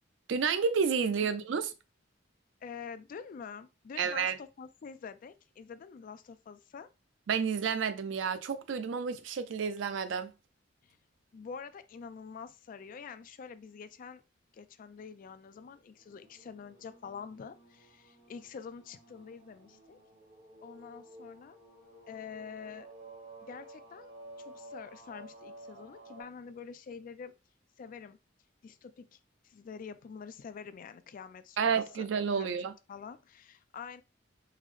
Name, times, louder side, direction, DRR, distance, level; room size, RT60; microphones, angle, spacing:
voice 1, 0.3-1.7 4.0-4.4 7.3-10.3 31.6-32.7, right 6 dB, 70° right, 0.4 m, -30 dB
voice 2, 2.6-6.9 10.8-11.0 11.3-14.2 14.5-20.0 20.6-21.6 22.1-22.9 23.4-24.1 24.4-27.3 27.8-28.2 28.6-29.2 29.4-32.1 32.4-32.5 32.9-34.0, left 6 dB, 45° left, 0.3 m, -46 dB
sound 1, 15.9-26.2, right 1 dB, 30° right, 0.9 m, -53 dB
3.8 x 2.0 x 3.1 m
head